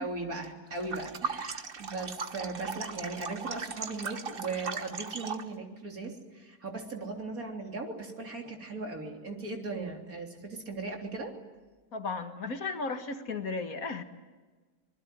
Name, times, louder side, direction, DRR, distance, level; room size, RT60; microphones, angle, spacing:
voice 1, 0.0-11.3, right 3 dB, 55° right, 2 dB, 3.9 m, -38 dB
sound 1, 0.8-5.5, right 5 dB, 35° right, 1.3 m, -38 dB
voice 2, 11.9-14.0, left 3 dB, 55° left, 7 dB, 2.0 m, -35 dB
26.0 x 21.0 x 9.2 m, 1.3 s
omnidirectional pair, 1.8 m